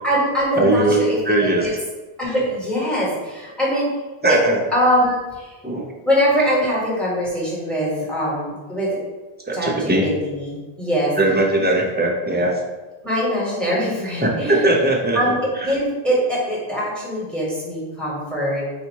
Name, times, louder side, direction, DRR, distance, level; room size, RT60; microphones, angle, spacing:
voice 1, 0.0-1.7 2.2-3.9 4.3-4.4 4.7-5.7 6.0-9.0 9.5-11.1 13.0-14.7 15.1-18.7, equal, ahead, -5 dB, 1.3 m, -22 dB
voice 2, 0.6-1.6 4.2-4.6 5.6-5.9 9.5-10.1 11.2-12.6 14.2-15.2, right 2 dB, 15° right, -1 dB, 0.4 m, -19 dB
4.1 x 2.6 x 4.5 m, 1.2 s
omnidirectional pair, 1.0 m